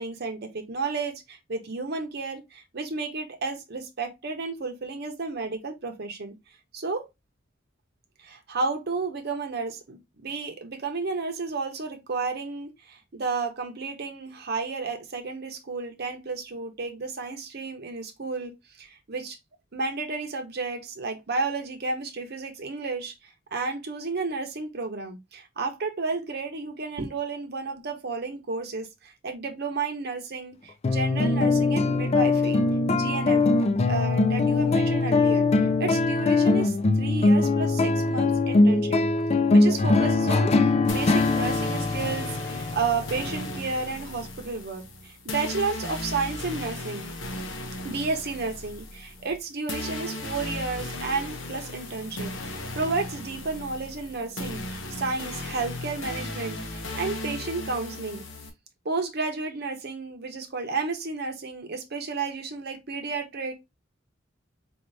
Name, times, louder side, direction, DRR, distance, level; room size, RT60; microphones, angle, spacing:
voice 1, 0.0-6.3 6.7-7.0 8.2-18.5 18.8-19.4 19.7-32.6 32.9-33.5 33.8-39.0 39.5-47.2 47.8-58.2 58.8-63.5, right 4 dB, 55° right, 0.8 m, -32 dB
sound 1, 30.8-43.6, left 3 dB, 35° left, 0.3 m, -22 dB
sound 2, 40.9-58.5, left 2 dB, 85° left, 1.0 m, -36 dB
4.4 x 2.7 x 3.1 m
head